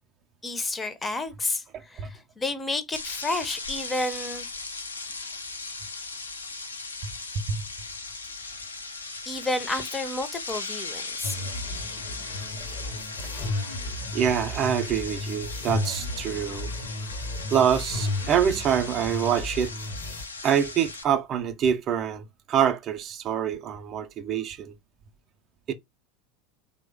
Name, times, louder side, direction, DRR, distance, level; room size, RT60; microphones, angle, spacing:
voice 1, 0.4-4.5 9.3-11.4, left 2 dB, 20° left, 0.5 m, -31 dB
voice 2, 1.7-2.1 7.5-7.6 13.2-13.3 14.1-16.7 17.5-19.7 20.4-24.7 25.7-25.8, right 8 dB, 40° right, 0.4 m, -26 dB
sound 1, 2.9-21.0, left 3 dB, 85° left, 0.4 m, -38 dB
sound 2, 11.2-20.3, left 2 dB, 55° left, 0.7 m, -34 dB
2.9 x 2.1 x 3.3 m
figure-of-eight pair, 75°, 0 cm